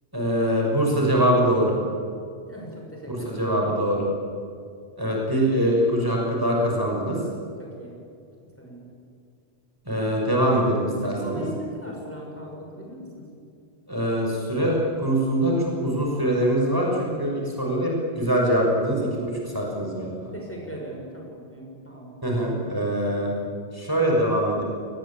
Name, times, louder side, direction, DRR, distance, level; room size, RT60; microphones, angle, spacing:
voice 1, 0.1-1.8 3.1-4.0 5.0-7.2 9.8-11.4 13.9-20.3 22.2-23.3 23.7-24.6, equal, 20° right, -2 dB, 6.2 m, -23 dB
voice 2, 2.5-4.1 7.6-7.9 8.6-8.9 11.0-13.3 20.3-22.5, equal, 10° left, -2 dB, 6.2 m, -39 dB
28.0 x 20.0 x 8.8 m, 2.4 s
omnidirectional pair, 1.2 m